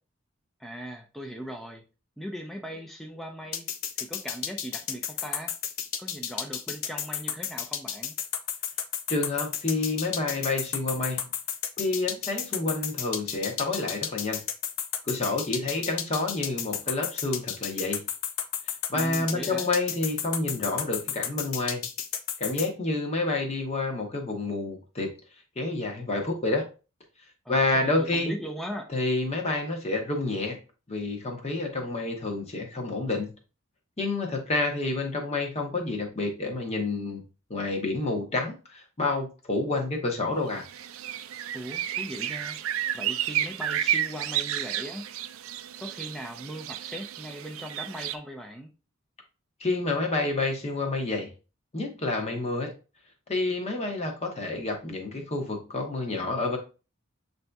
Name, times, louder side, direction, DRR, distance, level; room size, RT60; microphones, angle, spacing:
voice 1, 0.6-1.8 2.2-3.7 4.0-5.6 6.0-8.2 18.9-19.7 27.4-28.9 41.5-42.6 42.9-45.1 45.8-48.7, equal, ahead, 1 dB, 0.4 m, -39 dB
sound 1, 3.5-22.7, left 9 dB, 80° left, 0.5 m, -32 dB
voice 2, 9.1-11.3 11.8-14.4 15.0-18.0 18.9-21.8 22.4-25.2 25.6-26.7 27.5-28.4 28.9-30.6 30.9-33.3 34.0-37.2 37.5-40.7 49.6-51.3 51.7-52.7 53.3-56.6, left 2 dB, 30° left, 2 dB, 0.9 m, -29 dB
sound 2, 40.6-48.2, right 11 dB, 85° right, 0.3 m, -31 dB
7.2 x 2.6 x 2.2 m, 0.32 s
head